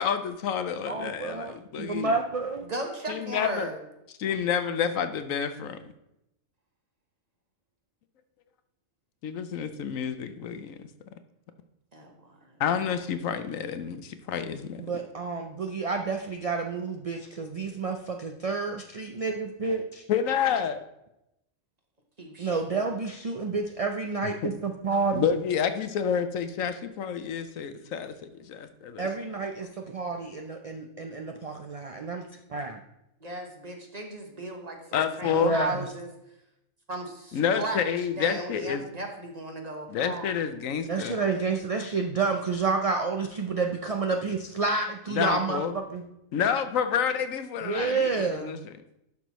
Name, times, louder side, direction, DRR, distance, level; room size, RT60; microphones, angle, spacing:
voice 1, 0.0-2.1 3.1-3.7 4.2-5.8 9.2-10.9 12.6-14.8 20.1-20.8 25.1-29.1 34.9-35.6 37.3-38.8 39.9-41.2 45.1-45.7 46.3-48.6, left 7 dB, 75° left, 10 dB, 1.1 m, -29 dB
voice 2, 0.9-2.6 14.8-20.0 22.4-25.4 29.0-32.8 35.3-35.9 40.9-46.0 47.6-48.7, right 4 dB, 55° right, 4 dB, 0.4 m, -30 dB
voice 3, 2.6-3.8 11.9-12.5 22.2-22.7 33.2-36.1 36.9-37.8 38.2-40.3, right 2 dB, 30° right, 2 dB, 1.2 m, -36 dB
11.5 x 5.9 x 3.1 m, 0.84 s
omnidirectional pair, 1.4 m